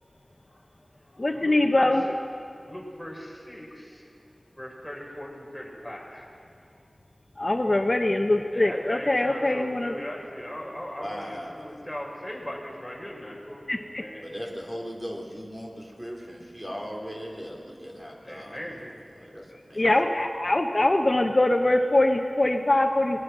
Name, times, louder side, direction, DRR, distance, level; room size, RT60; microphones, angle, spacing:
voice 1, 0.2-2.1 2.6-4.2 4.6-6.9 8.0-13.6 14.0-14.3 18.2-18.9, equal, ahead, -3 dB, 6.0 m, -40 dB
voice 2, 1.2-2.0 7.4-9.9 13.7-14.0 19.8-23.2, left 1 dB, 45° left, 3 dB, 1.1 m, -23 dB
voice 3, 11.0-11.7 14.2-18.9 19.2-19.9, equal, 15° right, -2 dB, 3.7 m, -38 dB
24.0 x 20.5 x 6.2 m, 2.4 s
wide cardioid pair, 65°, 0 cm